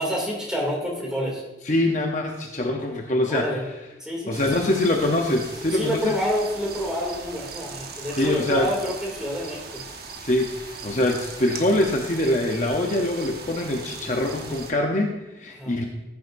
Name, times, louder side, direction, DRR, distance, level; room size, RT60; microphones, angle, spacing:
voice 1, 0.0-1.4 3.3-3.7 4.0-4.4 5.7-9.8 15.5-15.8, equal, 5° right, -3 dB, 2.5 m, -28 dB
voice 2, 1.7-3.5 4.3-6.2 8.2-8.7 10.2-15.9, left 1 dB, 40° left, 2 dB, 0.7 m, -24 dB
sound 1, 4.3-14.7, right 4 dB, 55° right, 1.3 m, -39 dB
15.0 x 9.6 x 2.6 m, 0.99 s
head